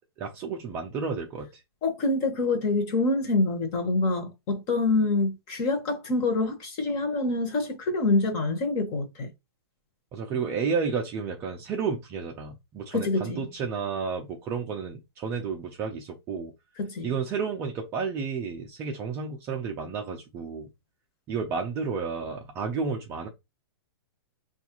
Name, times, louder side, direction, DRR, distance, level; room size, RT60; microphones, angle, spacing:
voice 1, 0.2-1.5 10.1-16.5 17.0-20.7 21.3-23.3, right 5 dB, 20° right, 0.4 m, -31 dB
voice 2, 1.8-9.3 12.9-13.5 16.8-17.1, left 2 dB, 30° left, 0.9 m, -26 dB
5.0 x 2.4 x 2.9 m
hypercardioid pair, 160°, 13 cm